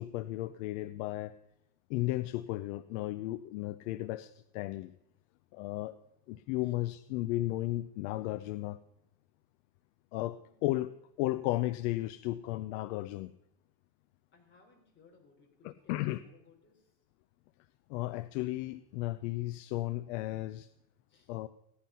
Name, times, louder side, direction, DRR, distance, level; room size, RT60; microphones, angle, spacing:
voice 1, 0.0-1.4 1.9-4.9 5.5-5.9 6.3-8.8 10.1-10.9 11.2-13.3 15.9-16.2 17.9-20.7 21.3-21.5, left 17 dB, 60° left, 14 dB, 0.6 m, -34 dB
voice 2, 10.3-10.7 14.3-17.0 21.0-21.4, left 4 dB, 25° left, 1 dB, 3.7 m, -64 dB
15.5 x 11.0 x 5.6 m, 0.82 s
supercardioid pair, 150°, 42 cm